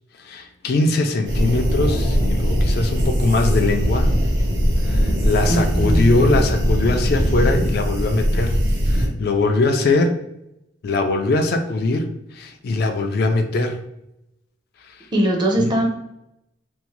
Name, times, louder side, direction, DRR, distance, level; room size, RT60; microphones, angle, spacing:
voice 1, 0.2-4.1 4.8-8.6 8.9-10.2 10.8-13.8 14.8-15.1 15.6-15.7, left 2 dB, 55° left, 5 dB, 0.3 m, -21 dB
sound 1, 1.3-9.1, equal, 65° right, 0.8 m, -20 dB
voice 2, 5.5-6.1 15.1-15.8, right 1 dB, 25° right, 1 dB, 0.5 m, -20 dB
2.7 x 2.0 x 3.0 m, 0.83 s
head